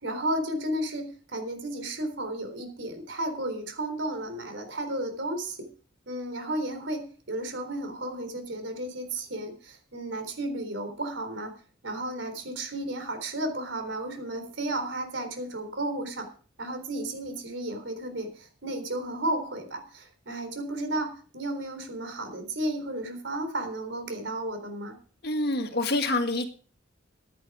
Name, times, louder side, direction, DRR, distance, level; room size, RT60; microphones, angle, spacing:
voice 1, 0.0-5.6 6.1-11.5 11.8-16.3 16.6-25.0, right 1 dB, 75° right, 7 dB, 3.8 m, -33 dB
voice 2, 25.2-26.5, left 2 dB, 55° left, 6 dB, 1.9 m, -26 dB
15.0 x 10.0 x 5.0 m, 0.42 s
head